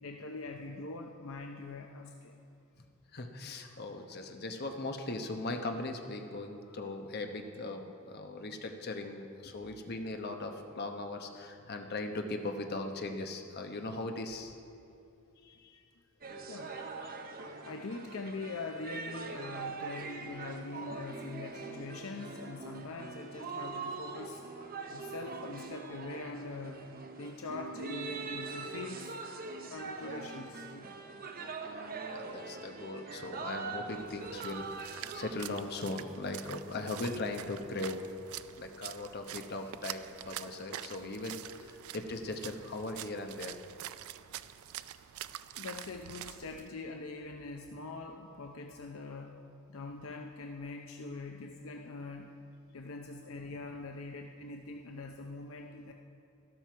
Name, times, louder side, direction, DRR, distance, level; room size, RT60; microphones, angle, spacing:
voice 1, 0.0-2.3 3.6-3.8 4.1-4.2 6.6-6.8 10.3-10.4 15.7-15.8 16.5-16.8 17.4-24.4 24.9-26.8 27.2-30.9 38.4-38.6 45.0-45.1 45.5-49.4 49.7-52.3 52.7-55.9, left 3 dB, 70° left, 3 dB, 0.7 m, -43 dB
voice 2, 3.1-14.6 15.4-15.8 32.1-38.0 38.6-43.6, left 2 dB, 50° left, 4 dB, 1.0 m, -39 dB
sound 1, 16.2-35.3, right 4 dB, 45° right, 0.8 m, -43 dB
sound 2, 20.8-34.6, left 3 dB, 5° right, 2.6 m, -59 dB
Splash splatter, 33.9-46.7, right 12 dB, 75° right, 0.4 m, -46 dB
12.5 x 12.5 x 4.6 m, 2.6 s
head